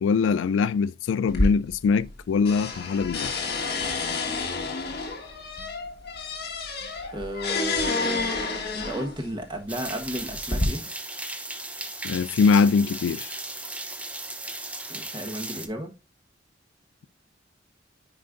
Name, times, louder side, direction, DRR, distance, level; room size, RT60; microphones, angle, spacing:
voice 1, 0.0-3.4 12.0-13.3, left 5 dB, 80° left, 0.3 m, -22 dB
sound 1, 1.3-2.2 2.5-9.3 10.0-10.6, left 3 dB, 55° left, 1.6 m, -29 dB
voice 2, 7.1-8.3 8.7-10.9 14.9-15.9, equal, 25° right, 1.2 m, -33 dB
sound 2, 9.7-15.7, right 2 dB, 5° right, 0.6 m, -36 dB
9.6 x 4.4 x 2.5 m
head